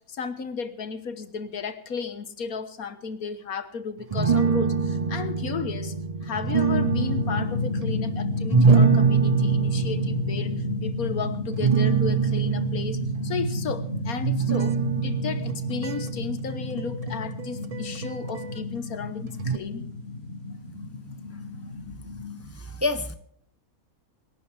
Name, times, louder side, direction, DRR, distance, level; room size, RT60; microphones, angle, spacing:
voice 1, 0.0-5.9 6.2-19.9, left 5 dB, 85° left, 10 dB, 1.8 m, -34 dB
sound 1, 4.1-18.6 19.4-19.6, right 5 dB, 50° right, 0.4 m, -25 dB
sound 2, 6.7-22.5, left 3 dB, 55° left, 6.5 m, -31 dB
voice 2, 21.1-21.4 22.4-23.1, left 2 dB, 15° right, 10 dB, 0.7 m, -30 dB
26.5 x 11.5 x 3.5 m, 0.65 s
omnidirectional pair, 1.5 m